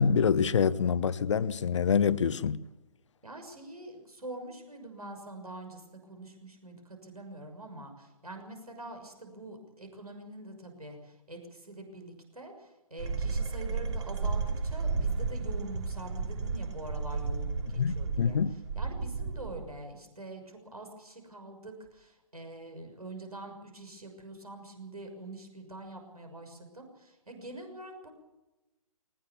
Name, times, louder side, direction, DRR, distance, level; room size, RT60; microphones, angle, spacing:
voice 1, 0.0-2.6 17.8-18.5, left 6 dB, 50° left, 0.9 m, -26 dB
voice 2, 3.2-18.4 18.8-28.1, right 1 dB, 80° right, 6.3 m, -45 dB
sound 1, 13.0-19.7, right 4 dB, 50° right, 2.7 m, -33 dB
21.0 x 19.5 x 7.2 m
figure-of-eight pair, 130°, 19 cm